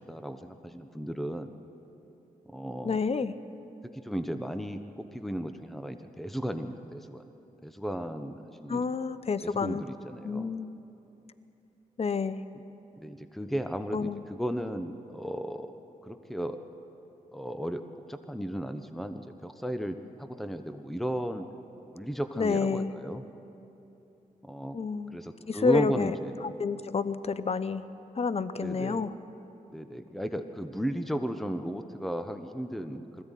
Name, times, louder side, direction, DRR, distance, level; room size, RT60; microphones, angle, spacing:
voice 1, 0.0-1.5 2.5-3.0 3.8-7.2 7.6-8.9 9.4-10.5 13.0-15.7 16.0-16.6 17.3-21.5 21.9-23.2 24.4-24.8 25.1-26.3 28.6-29.1 29.7-33.2, equal, ahead, 8 dB, 1.1 m, -35 dB
voice 2, 2.8-3.3 8.7-9.8 10.2-10.8 12.0-12.4 13.9-14.2 22.4-22.9 24.7-26.1 26.4-27.8 28.2-29.1, left 5 dB, 40° left, 14 dB, 0.8 m, -29 dB
20.5 x 15.5 x 9.2 m, 3.0 s
supercardioid pair, 50°, 15 cm